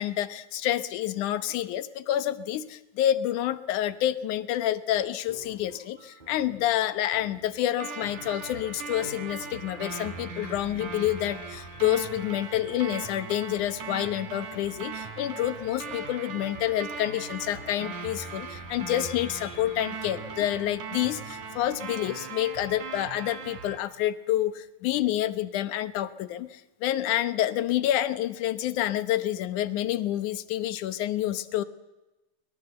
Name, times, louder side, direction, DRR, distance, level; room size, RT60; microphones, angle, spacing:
voice 1, 0.0-31.6, left 12 dB, 75° left, 14 dB, 2.5 m, -28 dB
sound 1, 4.9-21.6, right 1 dB, 15° right, 4.6 m, -52 dB
sound 2, 7.8-23.8, right 5 dB, 75° right, 4.2 m, -39 dB
23.5 x 21.0 x 7.9 m, 1.0 s
omnidirectional pair, 3.7 m